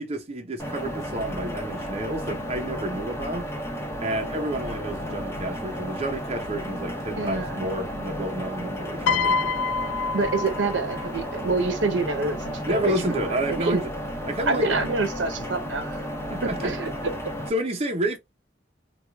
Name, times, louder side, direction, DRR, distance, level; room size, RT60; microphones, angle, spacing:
voice 1, 0.0-3.5 4.0-9.6 12.6-13.9 14.3-14.8 16.3-16.8 17.5-18.2, right 1 dB, 35° right, 0.6 m, -30 dB
sound 1, 0.6-17.5, equal, 15° left, 0.7 m, -33 dB
voice 2, 7.1-7.7 10.1-13.8 14.5-16.0 16.4-17.3, right 3 dB, 70° right, 0.8 m, -27 dB
Piano, 9.1-11.4 12.5-12.7, left 5 dB, 85° left, 0.3 m, -27 dB
4.3 x 2.3 x 2.2 m
head